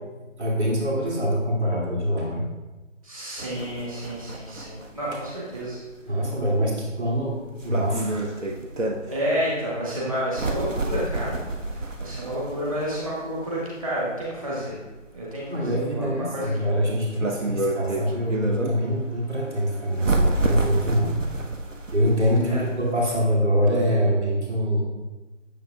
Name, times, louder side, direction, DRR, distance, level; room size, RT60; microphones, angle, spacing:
voice 1, 0.4-2.5 6.1-8.4 9.0-9.1 15.5-21.1 21.9-24.8, equal, 60° right, -4 dB, 2.5 m, -24 dB
voice 2, 3.0-5.8 6.1-6.2 9.1-11.4 11.7-14.8 15.1-16.5 22.4-22.6, equal, 25° right, -7 dB, 1.5 m, -30 dB
sound 1, 3.4-23.2, right 2 dB, 75° right, 1.0 m, -30 dB
9.2 x 7.1 x 2.3 m, 1.1 s
figure-of-eight pair, 160°, 38 cm